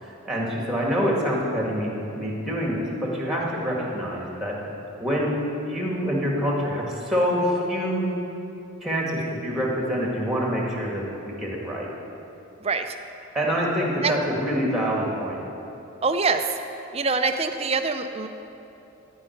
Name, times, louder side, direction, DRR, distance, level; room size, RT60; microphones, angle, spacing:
voice 1, 0.0-4.6 5.0-5.4 5.7-8.1 8.8-11.9 13.3-15.4, equal, ahead, -3 dB, 1.9 m, -26 dB
voice 2, 12.6-12.9 14.0-14.1 16.0-16.4 16.9-18.3, right 4 dB, 25° right, 7 dB, 0.5 m, -24 dB
14.0 x 5.5 x 9.2 m, 3.0 s
head